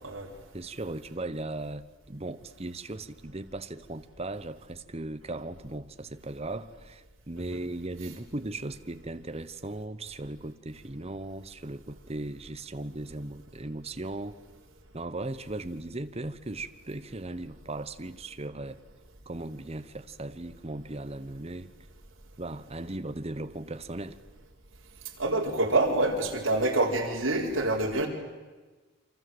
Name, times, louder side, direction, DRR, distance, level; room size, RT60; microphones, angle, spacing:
voice 1, 0.5-14.4 14.9-18.8 19.3-21.7 22.4-24.2, right 2 dB, 30° right, 10 dB, 1.0 m, -37 dB
voice 2, 25.2-28.1, right 2 dB, 70° right, -2 dB, 4.3 m, -26 dB
28.0 x 25.5 x 7.9 m, 1.3 s
head